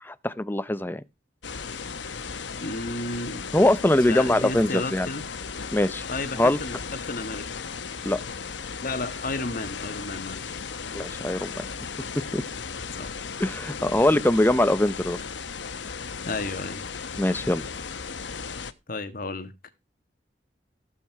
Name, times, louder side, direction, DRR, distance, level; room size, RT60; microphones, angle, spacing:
voice 1, 0.0-1.0 3.5-5.1 5.7-6.0 6.4-6.6 8.0-8.2 10.9-11.7 12.2-12.4 13.4-15.2 17.2-17.6, left 1 dB, 10° left, 0.7 m, -22 dB
sound 1, 1.4-18.7, left 5 dB, 85° left, 1.0 m, -36 dB
voice 2, 2.6-3.5 4.1-5.3 6.1-6.8 7.1-7.5 8.8-10.6 13.0-13.1 16.2-16.8 18.9-19.5, left 2 dB, 50° left, 1.5 m, -32 dB
15.0 x 7.7 x 4.7 m
head